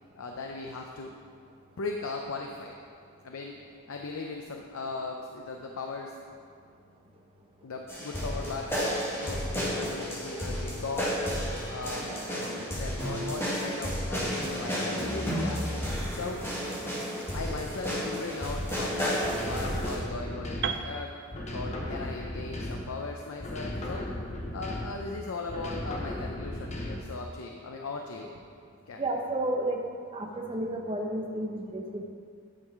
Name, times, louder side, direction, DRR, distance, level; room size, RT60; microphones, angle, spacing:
voice 1, 0.2-1.1 1.8-2.8 3.2-3.6 3.9-6.2 7.6-11.2 11.7-15.6 16.1-16.4 17.3-21.1 21.5-24.1 24.5-28.3 28.9-29.0, left 3 dB, 80° left, 2 dB, 0.6 m, -38 dB
sound 1, 7.9-20.0, equal, 10° left, 1.8 m, -32 dB
sound 2, 19.2-20.9 21.3-23.1 23.4-25.1 25.5-27.2, left 1 dB, 35° left, 0.9 m, -36 dB
Piano, 20.6-24.6, right 7 dB, 55° right, 0.4 m, -39 dB
voice 2, 29.0-29.8 30.1-32.0, right 1 dB, 25° right, 1 dB, 0.8 m, -31 dB
9.9 x 5.5 x 4.7 m, 2.2 s
head